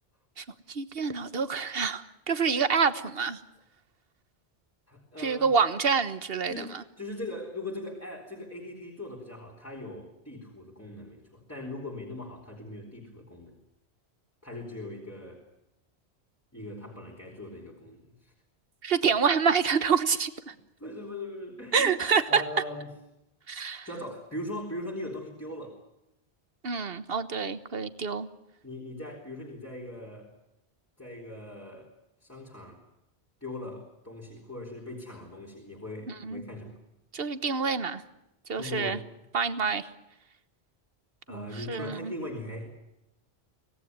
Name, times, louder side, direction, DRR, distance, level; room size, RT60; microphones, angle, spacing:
voice 1, 0.4-3.4 5.2-6.8 18.8-20.5 21.7-22.4 23.5-23.9 26.6-28.3 36.1-36.4 37.1-38.0 38.5-39.0 39.3-39.9 41.3-42.1, right 5 dB, 60° right, 12 dB, 1.5 m, -27 dB
voice 2, 4.9-5.5 6.5-13.5 14.4-15.4 16.5-18.3 20.8-22.9 23.8-25.8 28.6-30.3 31.0-31.9 32.2-32.8 33.4-36.8 38.6-39.0 41.3-42.7, left 1 dB, 15° left, -1 dB, 3.8 m, -40 dB
25.5 x 18.5 x 9.7 m, 0.88 s
omnidirectional pair, 1.1 m